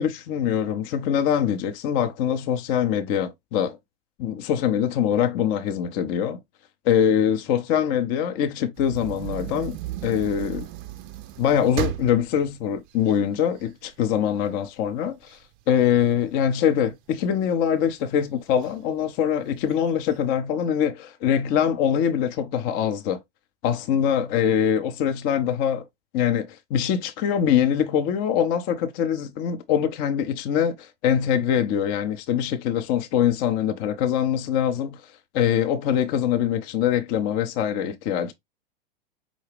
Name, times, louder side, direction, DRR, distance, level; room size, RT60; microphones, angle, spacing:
voice 1, 0.0-3.8 4.2-6.4 6.8-9.8 10.0-10.7 11.4-15.4 15.7-23.2 23.6-25.8 26.1-35.0 35.3-38.3, left 9 dB, 35° left, 0.5 m, -23 dB
sound 1, 8.8-13.9 14.4-14.5 14.9-16.9 17.5-18.0 18.6-18.7 19.0-19.1 19.6-20.2, right 13 dB, 30° right, 0.4 m, -35 dB
4.9 x 2.1 x 3.3 m
figure-of-eight pair, 95°, 29 cm